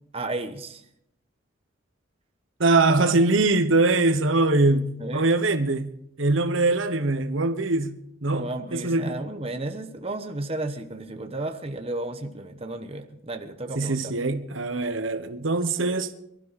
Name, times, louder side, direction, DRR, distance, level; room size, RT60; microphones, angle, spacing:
voice 1, 0.1-0.8 5.0-5.3 8.3-14.2, right 2 dB, 30° right, 1.1 m, -33 dB
voice 2, 2.6-9.2 13.7-16.1, right 2 dB, 85° right, 1.1 m, -23 dB
23.5 x 12.5 x 4.2 m
head